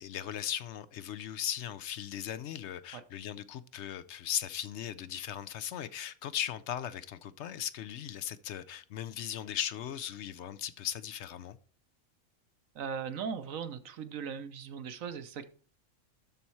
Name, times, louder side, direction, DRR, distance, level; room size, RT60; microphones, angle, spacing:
voice 1, 0.0-11.6, left 10 dB, 65° left, 15 dB, 0.7 m, -38 dB
voice 2, 12.7-15.5, right 6 dB, 70° right, 11 dB, 1.2 m, -38 dB
12.5 x 4.2 x 4.5 m, 0.41 s
omnidirectional pair, 1.5 m